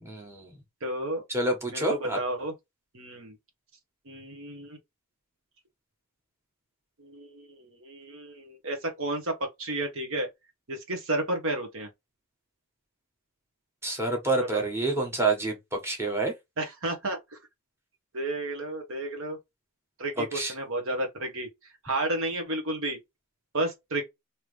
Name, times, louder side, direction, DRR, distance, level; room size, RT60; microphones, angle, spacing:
voice 1, 0.0-0.5 1.3-2.2 13.8-16.3 20.2-20.5, right 2 dB, 10° right, 1.4 m, -28 dB
voice 2, 0.8-1.2 1.7-2.5 2.9-3.4 4.0-4.8 7.0-10.3 10.7-11.9 14.4-14.6 16.6-17.4 18.1-19.4 20.0-23.0 23.5-24.1, right 2 dB, 60° right, 1.2 m, -32 dB
3.4 x 2.9 x 3.2 m
head